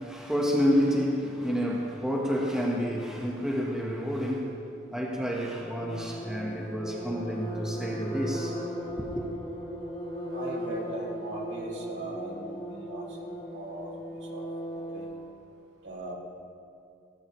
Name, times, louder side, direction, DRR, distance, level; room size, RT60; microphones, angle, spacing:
voice 1, 0.0-4.6 4.9-8.6 8.9-9.2, equal, 5° right, -3 dB, 1.3 m, -29 dB
sound 1, 5.7-15.3, equal, 30° left, 2.9 m, -37 dB
voice 2, 10.3-15.1 15.8-16.1, right 1 dB, 60° right, -2 dB, 2.5 m, -40 dB
18.0 x 13.5 x 3.2 m, 2.6 s
head